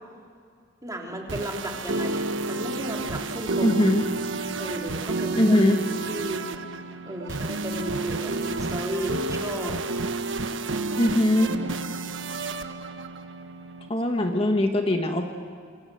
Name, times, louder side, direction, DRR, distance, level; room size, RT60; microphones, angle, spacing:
voice 1, 0.8-3.8 4.6-5.6 6.1-6.5 7.1-9.8, equal, 20° right, 0 dB, 3.5 m, -34 dB
sound 1, 1.1-13.9, right 3 dB, 80° right, 1.3 m, -30 dB
voice 2, 3.6-4.0 5.3-5.8 10.9-11.5 13.9-15.3, left 1 dB, 30° left, 4 dB, 1.5 m, -21 dB
28.0 x 24.5 x 7.8 m, 2.2 s
head